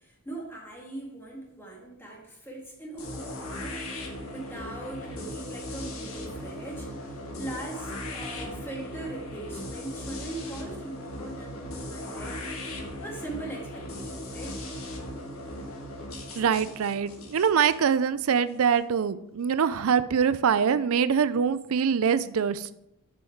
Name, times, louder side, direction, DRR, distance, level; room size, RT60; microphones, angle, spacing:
voice 1, 0.0-12.5 13.0-14.6, right 2 dB, 10° left, -2 dB, 1.8 m, -41 dB
sound 1, 3.0-18.8, left 1 dB, 70° left, 1.5 m, -38 dB
voice 2, 16.4-22.8, right 7 dB, 70° right, 15 dB, 0.4 m, -24 dB
7.5 x 5.6 x 4.5 m, 0.82 s
head